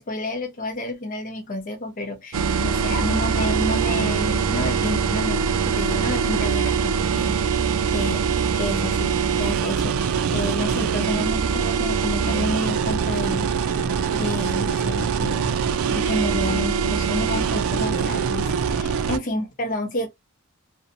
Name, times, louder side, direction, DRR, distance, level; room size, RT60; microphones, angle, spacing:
voice 1, 0.0-8.2 8.5-13.5 14.1-15.5 15.9-20.1, left 1 dB, 35° left, 0.5 m, -30 dB
sound 1, 2.3-19.2, right 6 dB, 65° right, 0.4 m, -23 dB
2.6 x 2.1 x 2.6 m
head